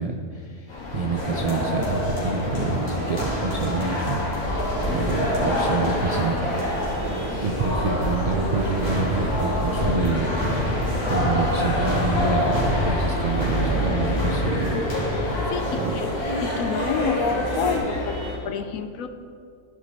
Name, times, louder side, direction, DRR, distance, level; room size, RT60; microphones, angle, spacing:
voice 1, 0.0-6.4 7.3-10.6 11.1-14.9 15.8-16.0, right 3 dB, 55° right, 1 dB, 0.4 m, -27 dB
sound 1, 0.7-18.4, left 1 dB, 90° left, 2.3 m, -30 dB
sound 2, 1.2-17.8, equal, 30° left, 2.3 m, -27 dB
voice 2, 4.9-5.3 14.7-14.8 15.5-16.1 16.4-19.1, left 7 dB, 75° left, 9 dB, 1.0 m, -29 dB
14.0 x 5.0 x 4.1 m, 2.2 s
omnidirectional pair, 1.5 m